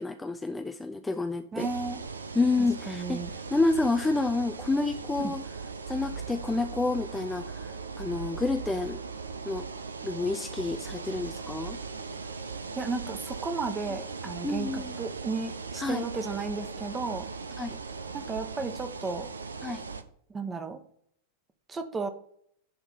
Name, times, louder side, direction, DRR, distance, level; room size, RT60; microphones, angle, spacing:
voice 1, 0.0-1.7 2.4-3.2 3.5-5.4 5.9-9.0 9.5-9.7 10.0-11.8 14.4-14.9 15.8-16.1 17.6-17.8 19.6-19.8, left 3 dB, 10° left, 8 dB, 0.4 m, -29 dB
voice 2, 1.5-2.0 2.9-3.3 5.2-5.3 12.8-17.3 18.1-19.3 20.3-20.8 21.7-22.1, right 4 dB, 15° right, 8 dB, 1.1 m, -34 dB
sound 1, 1.6-20.0, right 4 dB, 75° right, 0.6 m, -39 dB
10.5 x 3.6 x 5.4 m, 0.65 s
figure-of-eight pair, 90°, 0 cm